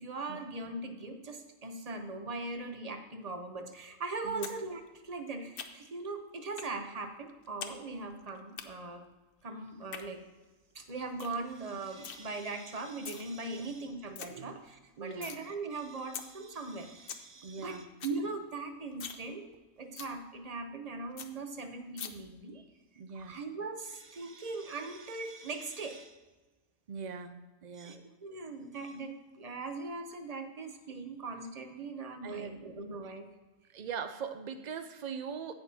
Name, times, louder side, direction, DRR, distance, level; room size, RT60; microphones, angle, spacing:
voice 1, 0.0-9.0 9.4-10.2 10.7-22.7 23.1-26.2 27.7-33.3, right 3 dB, 35° right, 6 dB, 0.8 m, -40 dB
sound 1, 4.4-4.6 4.9-6.0 6.6-6.7 7.1-7.8 8.0-8.6 9.7-10.0 10.5-10.6 10.9-11.0 11.2-11.4 11.7-12.2 12.8-13.2 13.7-13.8 13.9-14.3 14.7-15.4 15.8-15.9 16.1-16.3 16.6-16.7 16.9-17.2 17.6-17.7 17.9-18.2 18.5-18.6 18.9-19.2 19.5-19.6 20.0-20.1 20.5-20.6 20.8-20.9 21.2-21.3 22.0-22.1, left 7 dB, 55° left, 0.7 m, -42 dB
voice 2, 15.0-15.3 17.4-17.8 23.0-23.4 26.9-27.3 27.6-28.0 32.2-32.6 33.7-35.5, right 6 dB, 85° right, 8 dB, 0.3 m, -41 dB
16.5 x 5.8 x 2.8 m, 1.2 s
omnidirectional pair, 1.4 m